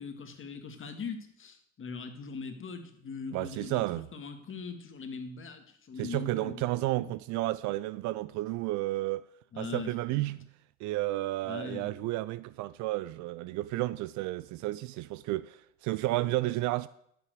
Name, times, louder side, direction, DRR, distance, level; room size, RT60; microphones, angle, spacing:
voice 1, 0.0-6.6 6.9-7.1 9.5-10.4 11.4-12.0, left 5 dB, 30° left, 1.8 m, -41 dB
voice 2, 3.3-4.0 6.0-9.2 9.6-10.5 10.8-16.9, right 17 dB, 50° right, 0.4 m, -32 dB
10.5 x 5.7 x 7.7 m
hypercardioid pair, 75°, 39 cm